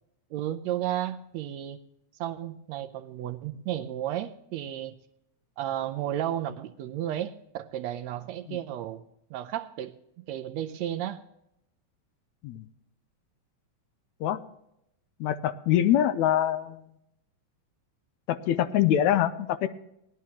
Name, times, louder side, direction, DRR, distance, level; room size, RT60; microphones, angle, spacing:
voice 1, 0.3-1.8 2.2-4.9 5.6-9.0 9.3-11.2, right 12 dB, 80° right, 9 dB, 1.7 m, -33 dB
voice 2, 15.2-16.8 18.3-19.7, left 11 dB, 80° left, 12 dB, 1.9 m, -24 dB
18.0 x 11.5 x 2.9 m, 0.80 s
omnidirectional pair, 3.4 m